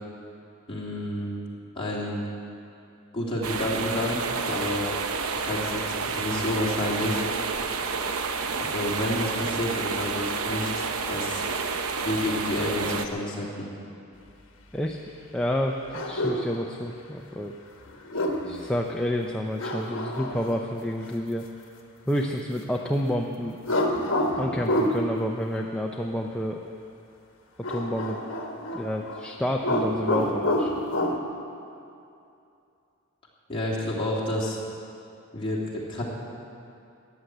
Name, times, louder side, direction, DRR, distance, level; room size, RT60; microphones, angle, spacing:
voice 1, 0.7-1.4 1.7-2.2 3.1-4.9 5.3-7.2 8.6-11.4 12.0-13.7 33.5-34.6 35.3-36.0, left 1 dB, 25° left, -6 dB, 2.9 m, -30 dB
sound 1, 3.4-13.1, right 4 dB, 85° right, 0.8 m, -30 dB
voice 2, 15.3-17.5 18.4-21.4 22.1-23.6 24.4-26.6 27.6-28.2 28.7-30.7, equal, 5° left, 0 dB, 0.5 m, -29 dB
sound 2, 15.9-16.5 17.9-18.6 19.6-20.7 23.6-25.0 27.6-29.2 29.5-31.2, left 1 dB, 60° left, 1.4 m, -27 dB
14.0 x 10.0 x 7.9 m, 2.6 s
head